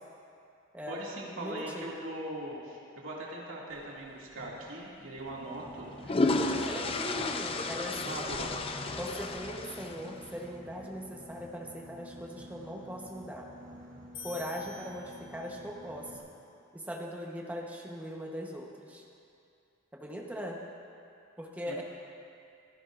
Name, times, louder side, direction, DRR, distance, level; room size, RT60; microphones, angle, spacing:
voice 1, 0.9-7.3 8.0-8.5 21.7-21.8, right 1 dB, 70° right, -4 dB, 2.3 m, -41 dB
voice 2, 1.4-1.9 6.7-8.3 8.9-13.5 14.2-16.1 16.7-19.0 19.9-20.6 21.4-21.8, equal, 5° right, -1 dB, 1.0 m, -40 dB
sound 1, 4.4-4.6 5.7-10.3, left 2 dB, 25° left, 0.5 m, -32 dB
Boat Water vehicle, 5.2-16.2, equal, 40° right, 1.7 m, -51 dB
sound 2, 14.1-15.8, left 5 dB, 65° left, 2.1 m, -47 dB
25.0 x 10.5 x 2.6 m, 2.5 s
head